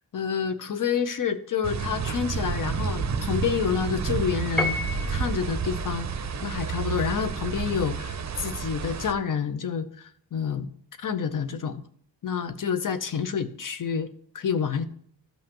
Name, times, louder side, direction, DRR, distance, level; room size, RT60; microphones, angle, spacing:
voice 1, 0.1-4.8 5.1-6.1 6.4-10.7 11.0-11.8 12.2-14.1 14.3-14.8, left 7 dB, 45° left, 11 dB, 0.8 m, -28 dB
sound 1, 1.6-9.1, right 5 dB, 40° right, 0.6 m, -30 dB
Piano, 4.6-5.5, left 2 dB, ahead, 0.6 m, -29 dB
15.0 x 5.5 x 3.0 m, 0.62 s
wide cardioid pair, 175°, 44 cm